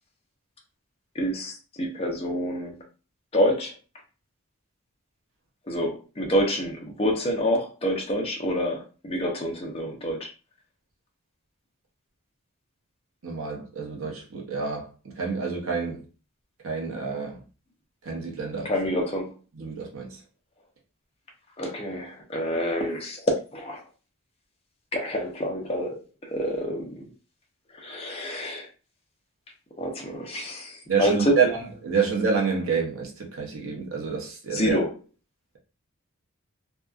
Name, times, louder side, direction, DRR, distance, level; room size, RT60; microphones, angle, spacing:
voice 1, 1.1-2.8 3.3-3.7 5.7-10.3 18.6-19.4 21.6-23.8 24.9-27.0 27.7-28.7 29.8-31.4 34.5-34.9, equal, 25° left, 0.5 m, -27 dB
voice 2, 13.2-16.0 16.6-17.4 18.0-18.7 19.6-20.2 30.9-31.5 31.8-34.8, right 5 dB, 70° right, 0.7 m, -28 dB
2.7 x 2.2 x 2.3 m
head